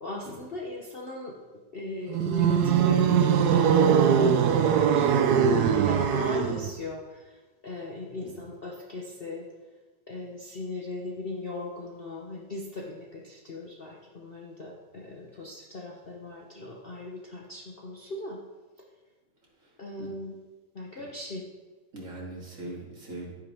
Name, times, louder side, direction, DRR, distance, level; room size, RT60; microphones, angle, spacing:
voice 1, 0.0-1.3 1.7-3.5 3.8-7.4 7.6-9.5 10.1-18.4 19.8-20.4 20.7-21.4, left 2 dB, 40° left, -2 dB, 1.0 m, -38 dB
sound 1, 2.1-6.8, right 7 dB, 65° right, 1.2 m, -21 dB
voice 2, 21.9-23.4, right 2 dB, 45° right, -4 dB, 2.9 m, -41 dB
11.5 x 9.8 x 3.5 m, 1.3 s
omnidirectional pair, 1.9 m